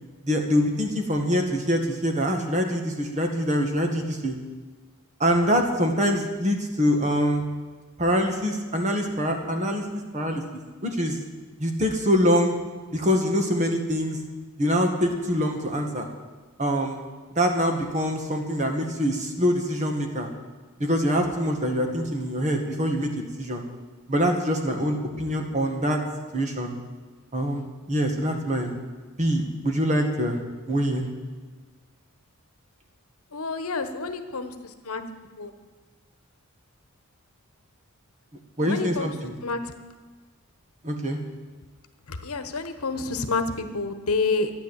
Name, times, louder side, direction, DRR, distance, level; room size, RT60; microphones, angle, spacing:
voice 1, 0.2-4.3 5.2-7.4 8.0-9.8 10.1-10.4 10.8-11.2 11.6-12.6 12.9-14.2 14.6-16.1 16.6-17.0 17.4-20.3 20.8-23.6 24.1-26.0 26.3-26.8 27.3-28.7 29.2-30.4 30.7-31.1 38.6-39.3 40.8-41.2, equal, 35° right, 4 dB, 1.8 m, -24 dB
voice 2, 33.3-34.5 34.9-35.0 35.4-35.5 38.6-39.1 39.4-39.6 42.1-44.5, left 3 dB, 75° left, 9 dB, 1.1 m, -28 dB
12.5 x 9.9 x 8.2 m, 1.4 s
head